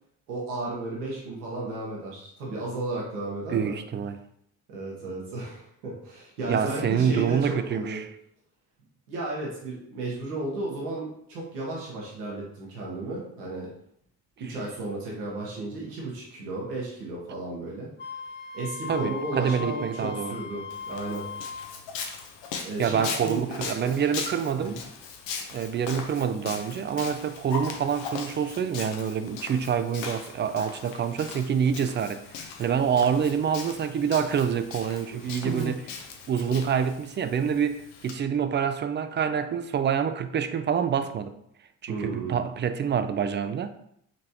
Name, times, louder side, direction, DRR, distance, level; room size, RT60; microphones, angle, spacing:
voice 1, 0.3-3.8 4.7-8.0 9.1-13.7 14.4-17.9 18.5-21.3 22.6-23.4 23.7-24.1 24.6-24.8 35.1-35.7 41.9-42.4, right 2 dB, 85° right, 1.1 m, -34 dB
voice 2, 3.5-4.2 6.5-8.1 18.9-20.3 22.8-24.8 25.5-35.8 36.3-41.4 41.8-43.7, right 7 dB, 25° right, 0.3 m, -27 dB
Wind instrument woodwind instrument, 18.0-21.7, left 5 dB, 25° left, 0.6 m, -38 dB
Walk footsteps, 20.7-38.1, left 5 dB, 65° left, 0.8 m, -39 dB
4.2 x 3.1 x 2.8 m
hypercardioid pair, 50°, 45 cm